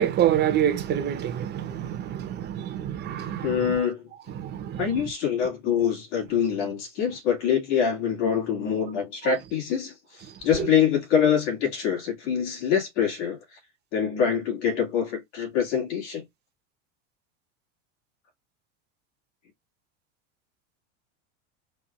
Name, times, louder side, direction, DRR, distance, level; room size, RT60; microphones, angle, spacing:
voice 1, 0.0-3.6 4.4-4.8, right 10 dB, 30° right, 0.7 m, -26 dB
voice 2, 3.4-4.0 4.8-9.9 10.4-13.4 13.9-16.2, left 8 dB, 80° left, 2.2 m, -25 dB
4.2 x 2.4 x 3.5 m
supercardioid pair, 130°, 35 cm